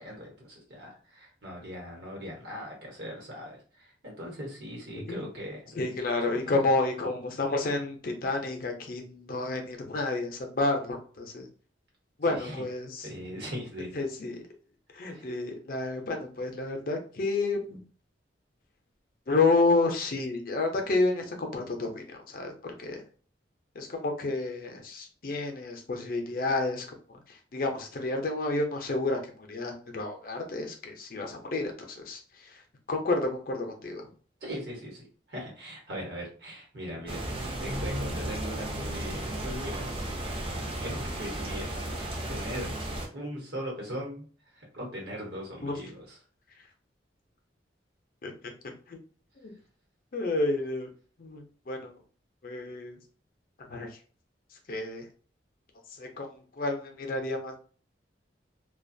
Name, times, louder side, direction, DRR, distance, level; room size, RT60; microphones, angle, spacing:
voice 1, 0.0-5.8 6.3-6.5 12.2-12.6 13.0-14.0 15.1-15.3 34.4-42.7 43.1-46.2, equal, 65° right, 0 dB, 1.0 m, -40 dB
voice 2, 5.7-11.5 12.2-13.1 13.9-14.4 14.9-17.8 19.3-23.0 23.8-29.2 29.5-32.6 32.9-34.1 45.6-45.8 48.2-48.3 48.9-49.0 49.4-49.5 50.1-50.9 51.2-51.9 52.4-53.0 53.7-54.0 54.7-55.1 55.9-57.6, left 2 dB, 50° left, 3 dB, 0.5 m, -30 dB
sound 1, 37.1-43.1, right 1 dB, 30° right, 0.5 m, -34 dB
2.4 x 2.2 x 2.6 m, 0.42 s
head